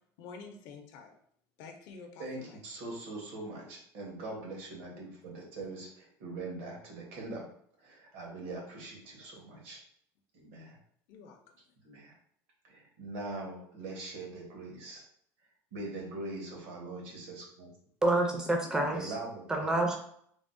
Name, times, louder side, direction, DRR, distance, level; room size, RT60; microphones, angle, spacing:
voice 1, 0.2-1.1 1.6-2.6 11.1-11.4, left 5 dB, 55° left, 3 dB, 0.4 m, -48 dB
voice 2, 2.2-7.5 7.8-9.8 10.3-10.8 11.8-12.1 12.6-15.0 15.7-17.7 18.9-19.8, right 2 dB, 70° right, -1 dB, 1.0 m, -42 dB
voice 3, 18.0-19.1 19.5-20.0, right 2 dB, 10° right, 2 dB, 0.4 m, -28 dB
3.3 x 2.0 x 2.5 m, 0.66 s
cardioid pair, 175°, 7 cm